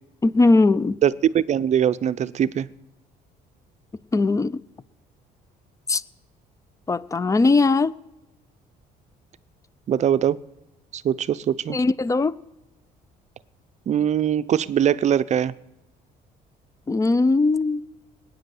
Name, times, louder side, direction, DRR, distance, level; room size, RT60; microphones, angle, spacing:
voice 1, 0.2-1.0 4.1-4.6 5.9-6.0 6.9-8.0 11.7-12.4 16.9-17.8, left 3 dB, 20° left, 0.4 m, -19 dB
voice 2, 1.0-2.7 9.9-10.4 10.9-11.8 13.9-15.5, right 9 dB, 45° right, 0.5 m, -21 dB
19.0 x 9.0 x 7.7 m
cardioid pair, 110°, 17 cm